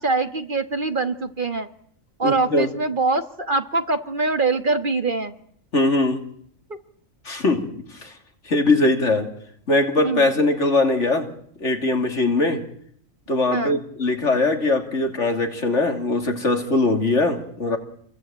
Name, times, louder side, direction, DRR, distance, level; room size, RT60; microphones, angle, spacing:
voice 1, 0.0-1.7 2.2-5.3 10.0-10.3 13.5-13.8, right 3 dB, 40° right, 9 dB, 1.7 m, -23 dB
voice 2, 2.2-2.7 5.7-6.2 7.2-7.7 8.0-8.1 8.4-9.3 9.7-11.3 11.6-12.6 13.3-17.8, left 2 dB, 65° left, 5 dB, 3.1 m, -21 dB
28.5 x 22.0 x 9.0 m, 0.67 s
omnidirectional pair, 1.3 m